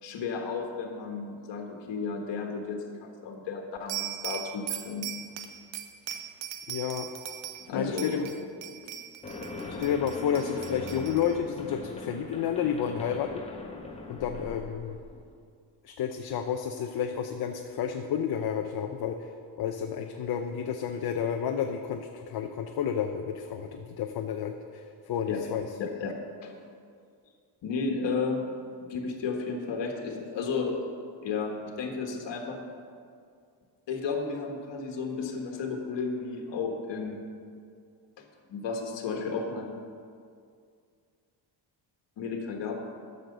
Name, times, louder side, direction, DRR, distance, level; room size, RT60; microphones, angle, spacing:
voice 1, 0.0-5.1 7.6-8.2 8.8-8.9 9.5-9.8 13.9-14.0 25.3-25.4 25.8-26.1 26.4-26.5 27.6-28.4 28.9-30.8 31.2-32.6 33.9-37.2 38.2-38.3 38.5-39.7 42.2-42.8, left 4 dB, 70° left, 2 dB, 1.5 m, -33 dB
sound 1, 3.9-7.7 8.0-11.3, right 11 dB, 85° right, 0.9 m, -39 dB
voice 2, 6.7-7.1 7.7-8.3 9.8-13.4 14.1-15.0 15.8-25.7, left 8 dB, 55° left, 4 dB, 0.7 m, -31 dB
sound 2, 9.2-15.3, left 3 dB, 15° left, 1.0 m, -40 dB
12.0 x 6.6 x 6.6 m, 2.2 s
cardioid pair, 165°, 44 cm